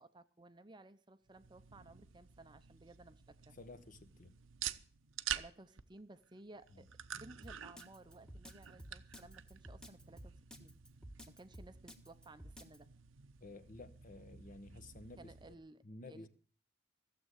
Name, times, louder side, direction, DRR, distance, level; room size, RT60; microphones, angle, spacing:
voice 1, 0.0-3.6 5.3-6.9 7.1-10.8 11.3-12.9 15.2-16.3, right 2 dB, 20° right, 0.7 m, -57 dB
sound 1, 1.3-15.5, right 10 dB, 80° right, 0.8 m, -49 dB
voice 2, 3.5-4.3 6.7-6.8 13.4-15.6 15.8-16.3, left 2 dB, 40° left, 1.1 m, -53 dB
Drum kit, 7.4-12.8, equal, 5° left, 1.3 m, -52 dB
15.5 x 7.7 x 8.2 m
head